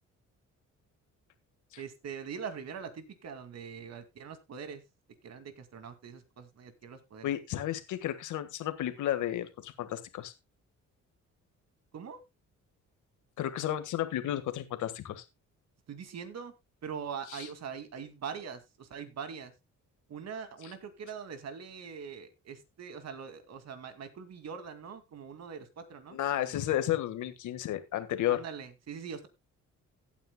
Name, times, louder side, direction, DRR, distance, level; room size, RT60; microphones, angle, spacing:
voice 1, 1.8-4.8 5.2-7.3 11.9-12.2 15.9-16.5 16.8-19.5 20.1-26.6 28.3-29.3, right 6 dB, 60° right, 9 dB, 2.3 m, -42 dB
voice 2, 7.2-10.3 13.4-15.2 17.3-17.5 26.1-28.4, left 12 dB, 80° left, 10 dB, 1.6 m, -32 dB
17.0 x 9.2 x 2.2 m, 0.23 s
cardioid pair, 90°, 30 cm